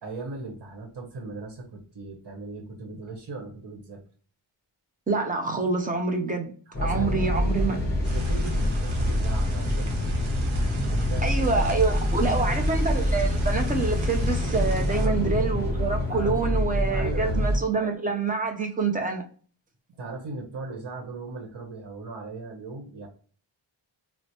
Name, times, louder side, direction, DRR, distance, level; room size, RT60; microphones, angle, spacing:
voice 1, 0.0-4.0 6.8-10.5 10.8-11.3 12.2-12.5 14.9-15.4 16.1-17.6 20.0-23.1, right 3 dB, 60° right, 1.0 m, -38 dB
voice 2, 5.1-6.5 6.8-7.8 11.2-19.2, right 4 dB, 20° right, 0.6 m, -26 dB
sound 1, 6.7-17.6, left 1 dB, 20° left, 1.0 m, -25 dB
sound 2, 8.0-15.1, right 4 dB, 85° right, 0.8 m, -43 dB
3.1 x 2.1 x 4.0 m
wide cardioid pair, 155°, 46 cm